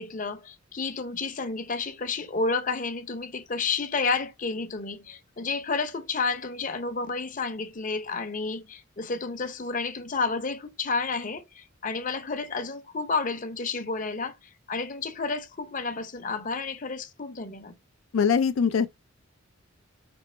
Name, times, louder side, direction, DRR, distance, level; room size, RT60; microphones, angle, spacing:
voice 1, 0.0-14.3 14.7-17.7, left 4 dB, 40° left, 0.7 m, -31 dB
voice 2, 18.1-18.9, left 6 dB, 70° left, 0.4 m, -22 dB
5.3 x 3.0 x 3.2 m
head